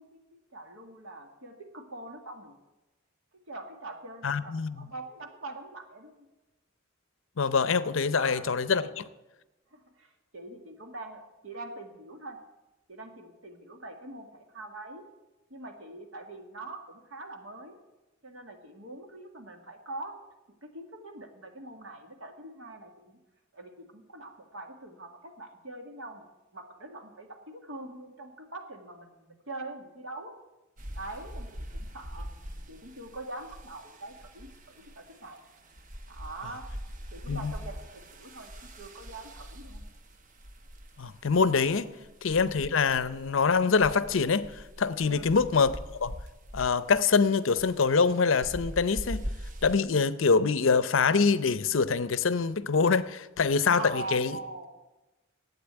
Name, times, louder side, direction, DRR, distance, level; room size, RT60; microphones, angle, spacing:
voice 1, 0.0-2.6 3.3-6.3 8.1-8.5 8.7-9.0 9.7-12.4 12.9-15.1 15.5-17.8 18.2-20.2 20.6-23.2 23.5-26.2 26.5-30.4 31.0-32.3 32.7-35.4 36.1-36.7 37.1-39.8 42.0-42.1 45.0-45.3 53.7-54.7, right 2 dB, 75° right, 2.0 m, -43 dB
voice 2, 4.2-4.9 7.4-9.0 37.3-37.5 41.0-41.9 42.2-44.5 44.8-46.1 46.5-49.2 49.6-54.4, left 5 dB, 65° left, 0.6 m, -25 dB
sound 1, 30.8-49.8, equal, 40° right, 1.0 m, -43 dB
12.0 x 8.7 x 8.9 m
head